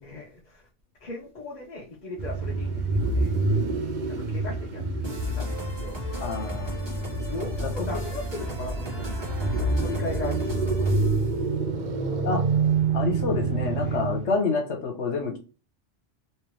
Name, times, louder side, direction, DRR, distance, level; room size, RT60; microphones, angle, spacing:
voice 1, 0.0-0.6 1.0-3.4 4.1-4.9 5.3-6.0 7.1-10.9 13.8-14.0, left 2 dB, 40° left, 0.8 m, -38 dB
sound 1, 2.2-14.4, right 3 dB, 50° right, 0.6 m, -27 dB
sound 2, 5.0-11.3, left 1 dB, 25° right, 1.2 m, -36 dB
voice 2, 6.2-6.8 7.6-7.7 12.2-12.4 12.9-15.3, left 4 dB, 75° left, 1.2 m, -27 dB
3.3 x 3.0 x 3.1 m
omnidirectional pair, 1.2 m